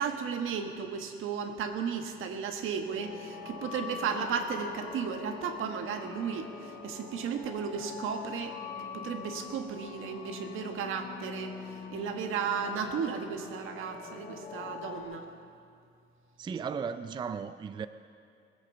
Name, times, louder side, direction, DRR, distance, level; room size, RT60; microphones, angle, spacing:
voice 1, 0.0-11.5 11.9-15.3, right 6 dB, 75° right, 5 dB, 1.4 m, -34 dB
sound 1, 2.9-15.0, left 5 dB, 45° left, 2.4 m, -44 dB
voice 2, 16.4-17.9, right 6 dB, 20° right, 12 dB, 0.3 m, -35 dB
20.5 x 8.3 x 7.1 m, 2.4 s
cardioid pair, 140°, 21 cm